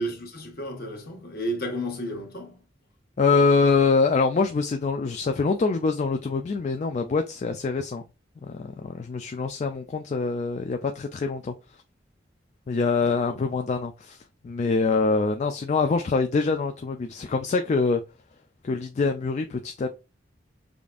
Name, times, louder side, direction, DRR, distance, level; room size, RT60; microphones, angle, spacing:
voice 1, 0.0-2.6 13.0-13.5, equal, 55° left, 1.2 m, -33 dB
voice 2, 3.2-8.0 8.5-11.5 12.7-14.2 14.4-18.0 18.6-19.9, left 4 dB, 40° left, 0.3 m, -24 dB
5.1 x 2.5 x 2.3 m
head